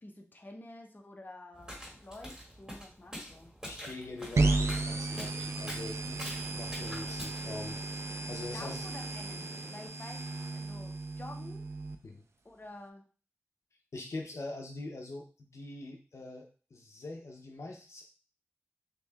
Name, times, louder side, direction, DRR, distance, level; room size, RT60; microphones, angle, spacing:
voice 1, 0.0-3.5 8.5-10.2 10.5-11.6 12.4-13.0, left 1 dB, 40° left, 2 dB, 0.8 m, -49 dB
sound 1, 1.5-7.4, equal, 15° right, 1.8 m, -45 dB
voice 2, 3.6-7.8 8.3-8.9 12.0-12.2 13.9-18.0, left 2 dB, 80° left, 2 dB, 0.5 m, -43 dB
sound 2, 4.3-9.9, right 1 dB, 45° right, 1.6 m, -52 dB
sound 3, 4.4-12.0, right 3 dB, 75° right, 0.4 m, -34 dB
6.6 x 2.8 x 2.2 m, 0.38 s
wide cardioid pair, 65°, 5 cm